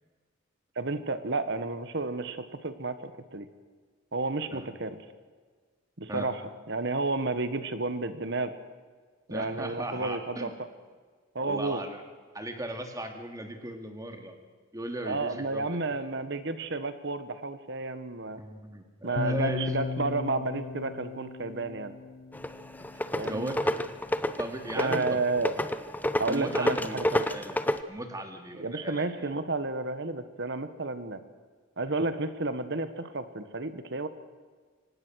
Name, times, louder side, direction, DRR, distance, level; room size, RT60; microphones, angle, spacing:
voice 1, 0.7-3.5 4.1-5.0 6.0-6.4 6.7-8.5 9.3-10.5 11.3-11.8 15.1-18.4 19.0-21.9 23.2-23.5 24.7-25.5 26.2-27.2 28.6-31.2 31.8-34.1, right 3 dB, 55° right, 11 dB, 1.4 m, -31 dB
voice 2, 9.3-10.5 11.4-12.0 12.3-14.4 14.7-16.0 18.4-19.7 23.2-23.6 24.4-25.2 26.3-27.6 27.9-29.3, right 1 dB, 15° right, 5 dB, 2.5 m, -37 dB
sound 1, 19.2-23.2, left 4 dB, 50° left, 0.6 m, -35 dB
sound 2, 22.3-27.8, left 1 dB, 10° left, 0.7 m, -30 dB
25.0 x 19.0 x 6.4 m, 1.5 s
head